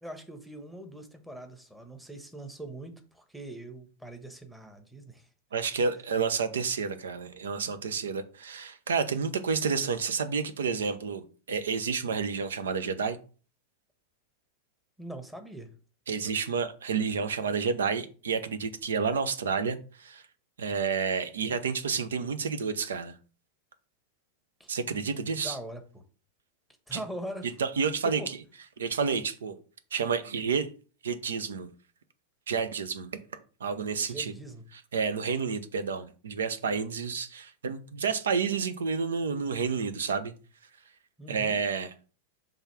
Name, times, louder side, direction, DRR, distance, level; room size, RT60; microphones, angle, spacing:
voice 1, 0.0-5.2 15.0-15.7 24.6-24.7 25.3-26.0 26.9-27.5 28.0-28.3 34.0-34.6 41.2-41.6, right 1 dB, 5° right, 1.2 m, -42 dB
voice 2, 5.5-13.2 16.1-20.2 20.6-23.1 24.7-25.6 26.9-27.0 27.6-28.4 28.8-29.5 29.9-30.7 31.0-31.7 32.5-33.2 33.6-34.3 34.7-40.3 41.3-41.9, right 5 dB, 65° right, 0.8 m, -30 dB
5.6 x 3.6 x 5.8 m
figure-of-eight pair, 90°, 0 cm